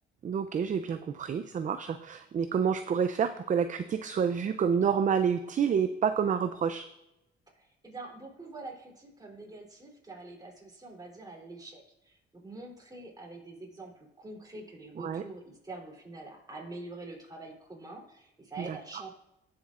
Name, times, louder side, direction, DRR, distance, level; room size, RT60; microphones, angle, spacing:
voice 1, 0.2-6.8 15.0-15.2, right 7 dB, 40° right, 10 dB, 0.5 m, -28 dB
voice 2, 7.5-19.1, right 2 dB, 20° right, -2 dB, 3.3 m, -45 dB
15.5 x 7.2 x 2.5 m, 0.91 s
cardioid pair, 90°, 20 cm